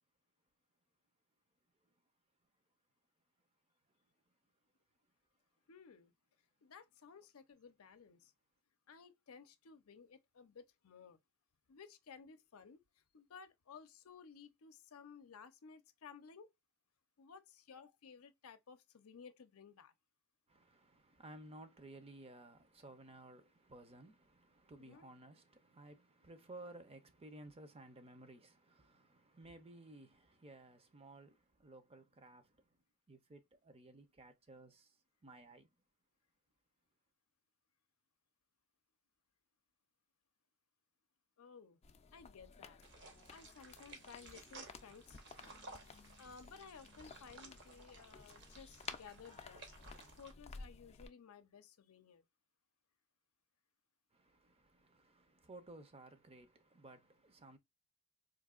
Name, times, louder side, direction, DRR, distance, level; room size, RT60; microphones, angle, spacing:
voice 1, 5.7-6.1 6.6-8.3 8.9-11.2 11.7-16.5 17.2-19.9 24.8-25.1 41.4-41.8 42.1-42.8 43.3-45.2 46.2-49.8 50.2-52.2, left 6 dB, 85° left, 0.6 m, -57 dB
voice 2, 20.5-32.8 33.1-35.7 54.1-57.6, right 2 dB, 30° right, 0.6 m, -57 dB
sound 1, 41.8-51.1, left 5 dB, 30° left, 0.4 m, -55 dB
sound 2, 42.8-50.3, right 3 dB, 55° right, 0.9 m, -57 dB
3.9 x 2.7 x 2.4 m
head